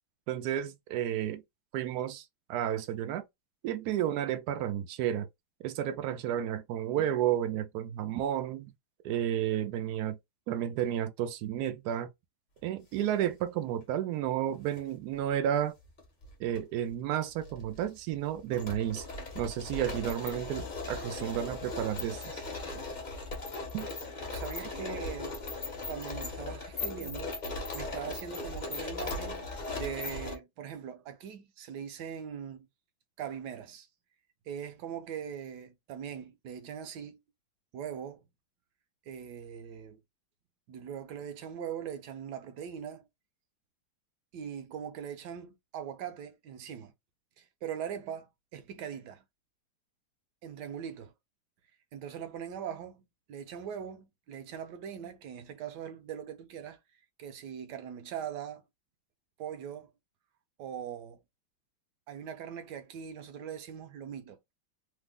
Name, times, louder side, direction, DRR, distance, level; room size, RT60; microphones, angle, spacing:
voice 1, 0.3-1.4 1.7-2.2 2.5-3.2 3.6-5.3 5.6-8.7 9.0-10.2 10.5-12.1 12.6-15.7 16.4-19.0 19.3-22.4 23.7-23.9, right 10 dB, 90° right, 0.8 m, -32 dB
sound 1, 14.5-14.8 15.8-16.6 16.9-17.0 17.4-30.3, left 3 dB, 45° left, 0.6 m, -38 dB
voice 2, 24.3-25.4 25.9-27.4 27.7-32.7 33.2-33.9 34.5-37.2 37.7-38.2 39.1-40.0 40.7-43.1 44.3-46.9 47.4-49.2 50.4-51.1 51.9-56.8 57.2-58.6 59.4-59.9 60.6-61.2 62.1-64.4, right 8 dB, 70° right, 1.1 m, -41 dB
3.3 x 2.0 x 3.5 m
omnidirectional pair, 2.3 m